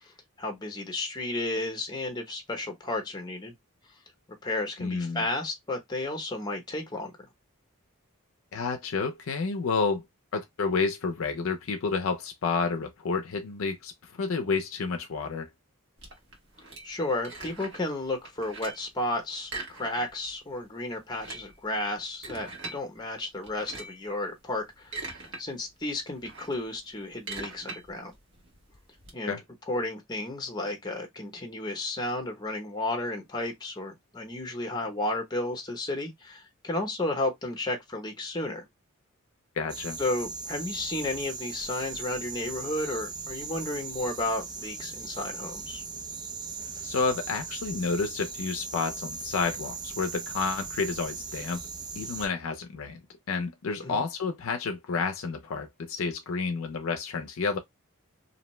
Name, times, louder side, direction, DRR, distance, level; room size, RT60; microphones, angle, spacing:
voice 1, 0.4-3.5 4.4-7.1 16.8-24.9 25.4-28.1 29.1-29.4 29.7-38.7 40.0-45.8 53.8-54.0, left 2 dB, 20° left, 0.8 m, -33 dB
voice 2, 4.8-5.2 8.5-10.0 10.3-15.5 29.3-29.4 39.6-40.0 46.8-51.6 52.0-53.0 53.3-57.6, left 4 dB, 65° left, 0.5 m, -30 dB
sound 1, 16.0-17.9 18.2-18.9 19.4-20.3 20.6-20.7 21.0-22.8 23.4-24.1 24.6-25.4 25.8-29.1, right 3 dB, 55° right, 1.1 m, -41 dB
sound 2, 39.7-52.3, right 4 dB, 20° right, 0.3 m, -39 dB
2.7 x 2.0 x 3.0 m
head